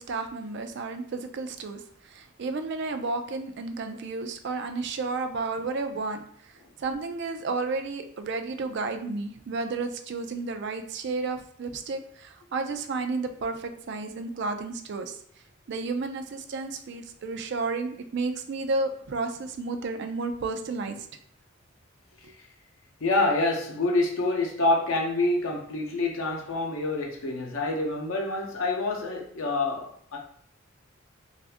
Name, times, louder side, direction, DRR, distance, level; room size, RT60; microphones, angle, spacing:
voice 1, 0.0-6.5 6.8-15.2 15.7-21.1 22.2-22.3, right 3 dB, 55° right, 7 dB, 0.4 m, -32 dB
voice 2, 23.0-30.2, left 2 dB, 80° left, 1 dB, 0.7 m, -27 dB
2.5 x 2.5 x 3.4 m, 0.65 s
head